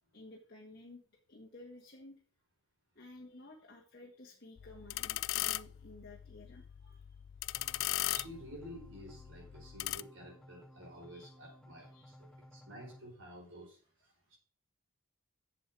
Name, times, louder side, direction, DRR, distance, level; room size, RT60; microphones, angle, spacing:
voice 1, 0.1-1.0 1.3-2.2 2.9-7.0 11.1-11.5 11.9-12.1, left 2 dB, 45° left, -2 dB, 1.6 m, -54 dB
sound 1, 4.6-10.0, left 16 dB, 60° left, 0.3 m, -39 dB
sound 2, 7.5-13.0, equal, 5° left, 0.8 m, -58 dB
voice 2, 8.0-14.4, equal, 60° right, 0 dB, 4.8 m, -51 dB
7.7 x 7.3 x 6.1 m, 0.40 s
head